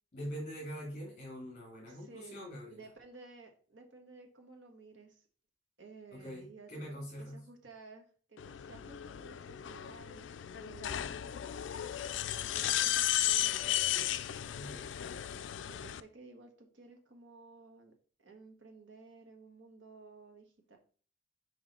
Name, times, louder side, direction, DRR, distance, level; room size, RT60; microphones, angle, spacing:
voice 1, 0.1-2.8 6.1-7.4 14.5-14.9, equal, 40° left, -4 dB, 2.5 m, -44 dB
voice 2, 1.9-2.4 2.7-5.3 5.8-11.3 12.5-13.7 15.7-17.9 18.2-20.8, right 4 dB, 80° right, 3 dB, 1.6 m, -55 dB
sound 1, 8.4-16.0, left 12 dB, 75° left, 0.4 m, -34 dB
6.4 x 5.0 x 4.3 m, 0.42 s
head